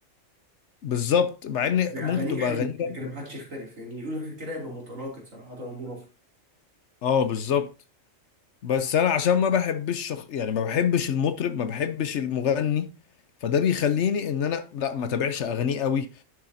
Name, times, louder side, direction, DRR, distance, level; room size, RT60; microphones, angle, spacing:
voice 1, 0.8-3.1 7.0-7.7 8.6-12.9 13.4-16.1, left 8 dB, 65° left, 1.0 m, -25 dB
voice 2, 1.9-6.1, equal, 75° right, 3.3 m, -35 dB
10.5 x 6.8 x 2.7 m
omnidirectional pair, 1.4 m